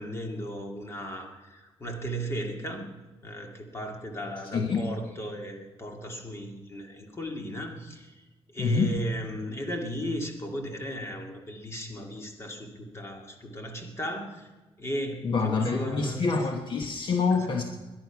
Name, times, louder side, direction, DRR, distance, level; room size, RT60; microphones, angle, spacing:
voice 1, 0.0-2.9 3.2-14.5 14.8-16.2 17.3-17.6, equal, 25° left, 3 dB, 2.3 m, -36 dB
voice 2, 4.5-4.9 8.6-8.9 15.2-17.6, left 4 dB, 50° left, 4 dB, 1.2 m, -26 dB
21.0 x 10.5 x 5.9 m, 1.2 s
wide cardioid pair, 165°, 11 cm